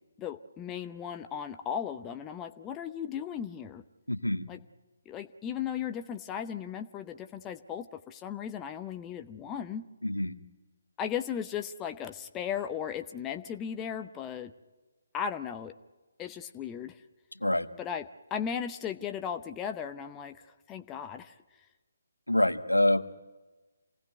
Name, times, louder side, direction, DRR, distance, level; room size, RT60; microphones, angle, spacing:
voice 1, 0.2-3.8 4.5-4.6 5.1-9.9 11.0-14.5 15.1-15.7 16.2-17.0 17.8-18.1 18.3-21.3, left 8 dB, 15° left, 8 dB, 0.7 m, -36 dB
voice 2, 4.1-4.5 10.0-10.4 17.3-17.7 22.3-23.1, left 1 dB, 85° left, 6 dB, 1.5 m, -26 dB
27.5 x 18.0 x 9.3 m, 1.2 s
figure-of-eight pair, 140°, 0 cm